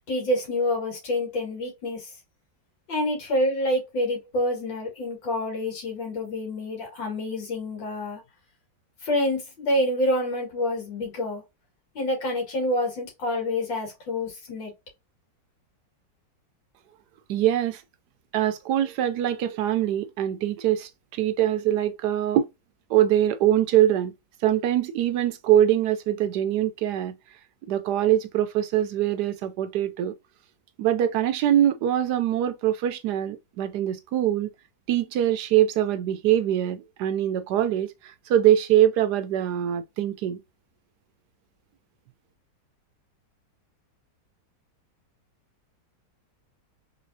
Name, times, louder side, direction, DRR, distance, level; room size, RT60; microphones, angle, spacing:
voice 1, 0.1-2.1 2.9-8.2 9.0-11.4 11.9-14.7, left 1 dB, 85° left, 2.6 m, -27 dB
voice 2, 17.3-17.8 18.3-22.4 22.9-24.1 24.4-27.2 27.7-30.1 30.8-34.5 34.9-40.4, right 11 dB, 75° right, 1.0 m, -23 dB
4.0 x 3.5 x 2.7 m
omnidirectional pair, 2.0 m